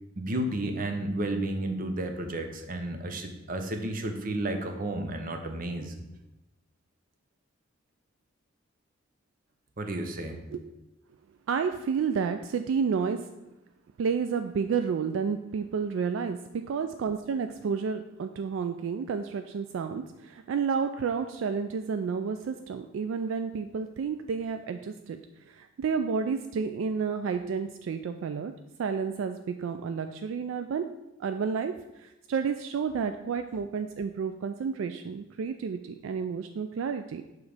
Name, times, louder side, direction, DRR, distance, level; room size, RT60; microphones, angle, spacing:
voice 1, 0.2-5.9 9.8-10.5, right 1 dB, 45° right, 6 dB, 0.7 m, -32 dB
voice 2, 11.5-13.2 14.0-25.2 25.5-28.5 28.8-30.8 31.2-37.2, right 6 dB, 70° right, 8 dB, 0.3 m, -30 dB
7.1 x 3.1 x 4.9 m, 0.96 s
head